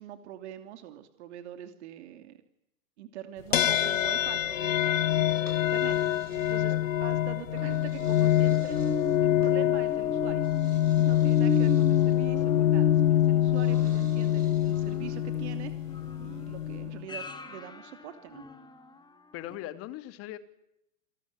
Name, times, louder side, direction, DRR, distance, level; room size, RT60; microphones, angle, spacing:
voice 1, 0.0-2.4 3.0-8.8 9.2-10.5 11.0-15.7 16.2-18.4, right 11 dB, 45° right, 8 dB, 2.9 m, -44 dB
sound 1, 3.5-17.0, left 12 dB, 60° left, 1.0 m, -25 dB
sound 2, 5.3-7.0 7.6-9.6 10.4-12.3 13.5-15.1, right 3 dB, 85° right, 3.3 m, -50 dB
sound 3, 7.6-19.1 19.5-19.6, left 2 dB, 10° left, 2.7 m, -38 dB
voice 2, 19.3-20.4, left 14 dB, 30° left, 11 dB, 2.5 m, -40 dB
29.0 x 19.0 x 9.7 m, 0.80 s
figure-of-eight pair, 105°, 45 cm